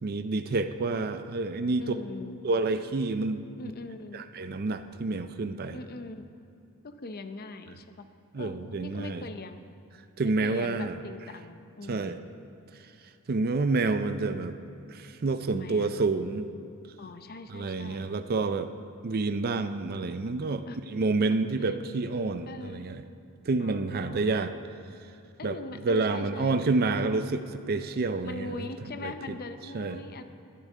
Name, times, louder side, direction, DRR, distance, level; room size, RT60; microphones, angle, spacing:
voice 1, 0.0-1.9 2.4-3.4 4.1-5.8 8.3-9.2 10.2-11.0 11.9-12.2 13.3-14.5 14.9-16.5 17.5-18.7 19.0-23.0 23.4-24.5 25.4-25.6 25.8-28.7 29.0-29.4 29.7-30.0, right 3 dB, 45° right, 9 dB, 0.5 m, -28 dB
voice 2, 1.8-2.4 3.6-4.2 5.7-6.2 6.8-8.1 8.3-9.6 10.2-12.2 15.5-15.9 17.0-18.1 20.6-20.8 21.6-21.8 22.5-22.9 23.6-24.4 25.4-26.6 28.2-30.2, left 3 dB, 45° left, 9 dB, 0.7 m, -41 dB
21.0 x 9.9 x 3.7 m, 2.6 s
head